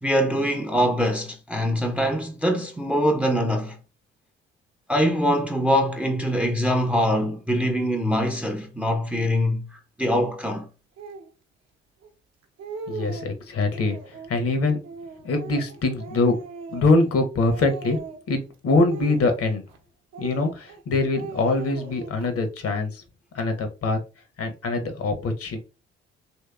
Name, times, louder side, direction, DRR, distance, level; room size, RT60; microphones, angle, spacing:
voice 1, 0.0-3.8 4.9-9.6 10.0-10.7, equal, 5° right, 0.6 m, -23 dB
Speech, 11.0-11.3 12.0-12.1 12.4-13.3 13.7-14.3 14.8-17.1 17.4-18.3 18.8-19.8 20.1-20.8 21.1-22.3, right 5 dB, 55° right, 0.8 m, -39 dB
voice 2, 12.9-14.0 14.3-14.8 15.2-16.4 16.7-18.0 18.3-19.6 20.2-23.0 23.3-24.0 24.4-25.6, left 3 dB, 50° left, 0.9 m, -23 dB
3.0 x 2.8 x 2.3 m
hypercardioid pair, 45°, 31 cm